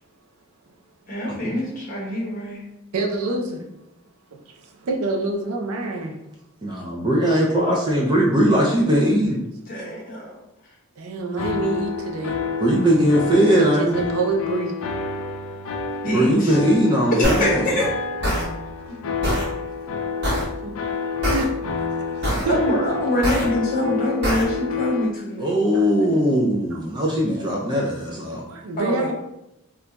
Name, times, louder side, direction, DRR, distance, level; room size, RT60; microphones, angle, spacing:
voice 1, 1.1-2.6 9.7-10.4 16.0-16.6 17.1-17.8 22.5-25.5 26.3-26.4 28.8-29.1, left 1 dB, 40° left, -4 dB, 0.9 m, -24 dB
voice 2, 2.9-3.6 4.5-6.1 11.0-12.4 13.4-14.8 18.9-19.0 20.6-20.7 21.1-21.5 21.8-22.7 25.7-25.9 26.7-26.8 28.3-29.1, right 3 dB, 80° right, 1 dB, 0.5 m, -27 dB
voice 3, 6.6-9.4 12.6-14.0 16.0-17.8 25.4-28.4, equal, 20° right, -3 dB, 0.3 m, -19 dB
sound 1, 11.4-25.1, left 5 dB, 75° left, 0.4 m, -29 dB
sound 2, 17.2-17.4 18.2-18.4 19.2-19.4 20.2-20.4 21.2-21.4 22.2-22.4 23.2-23.4 24.2-24.4, equal, 50° right, 1.0 m, -22 dB
2.3 x 2.2 x 3.9 m, 0.88 s
head